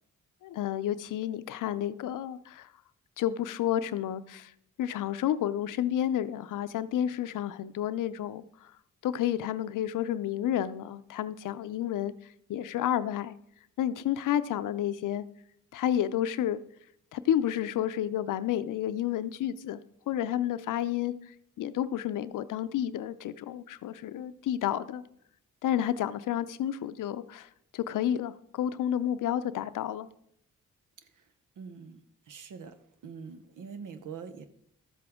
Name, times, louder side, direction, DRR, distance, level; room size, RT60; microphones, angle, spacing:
voice 1, 0.4-2.7 3.2-4.5 4.8-8.7 9.0-12.1 12.5-13.3 13.8-15.2 15.7-16.6 17.1-19.8 20.1-25.0 25.6-30.1, left 11 dB, 75° left, 0.6 m, -30 dB
voice 2, 31.6-34.5, right 6 dB, 75° right, 0.9 m, -44 dB
12.5 x 7.7 x 3.6 m
cardioid pair, 60°, 32 cm